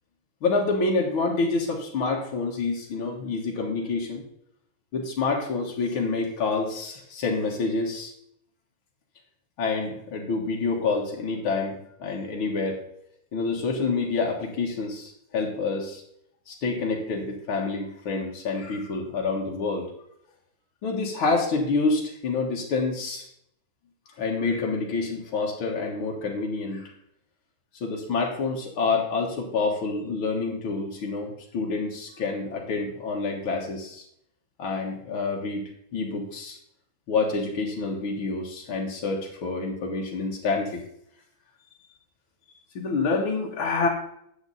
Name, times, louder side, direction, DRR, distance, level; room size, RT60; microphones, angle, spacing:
voice 1, 0.4-4.2 4.9-8.1 9.6-12.8 13.3-16.0 16.5-19.9 20.8-23.2 24.2-26.9 27.8-34.0 34.6-35.6 35.9-36.6 37.1-40.8 42.8-43.9, left 4 dB, 85° left, -1 dB, 2.4 m, -27 dB
9.5 x 7.4 x 4.0 m, 0.73 s
omnidirectional pair, 2.2 m